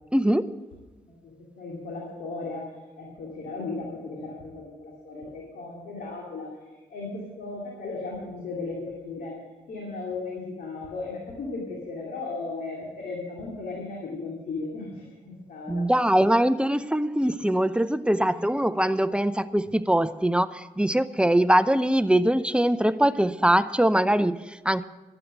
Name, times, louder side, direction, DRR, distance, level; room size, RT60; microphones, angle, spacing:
voice 1, 0.1-0.6 15.7-24.8, right 1 dB, 5° right, 15 dB, 0.6 m, -22 dB
voice 2, 1.0-6.5 6.9-9.4 9.7-15.9 18.2-18.4, left 3 dB, 75° left, -2 dB, 2.5 m, -36 dB
12.0 x 8.0 x 8.6 m, 1.2 s
supercardioid pair, 50°, 15 cm